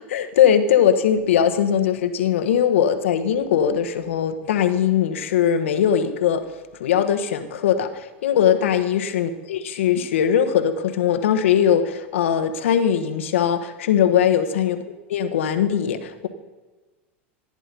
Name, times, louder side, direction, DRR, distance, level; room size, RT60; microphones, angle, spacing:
voice 1, 0.0-6.4 6.8-14.8 15.1-16.3, left 9 dB, 80° left, 8 dB, 1.2 m, -20 dB
15.5 x 9.9 x 5.3 m, 1.3 s
hypercardioid pair, 100°, 7 cm